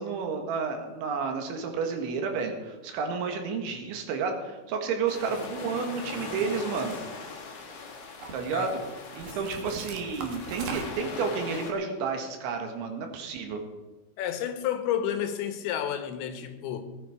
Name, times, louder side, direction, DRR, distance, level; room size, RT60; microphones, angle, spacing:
voice 1, 0.0-7.0 8.3-8.7 9.2-13.6, right 5 dB, 85° right, 4.1 m, -31 dB
sound 1, 5.1-11.7, left 4 dB, 50° left, 2.6 m, -40 dB
sound 2, 5.3-5.6 6.1-7.6 8.0-8.6 9.2-11.1, right 5 dB, 60° right, 2.6 m, -41 dB
voice 2, 14.2-16.8, left 9 dB, 80° left, 3.4 m, -30 dB
18.5 x 10.5 x 4.9 m
omnidirectional pair, 5.3 m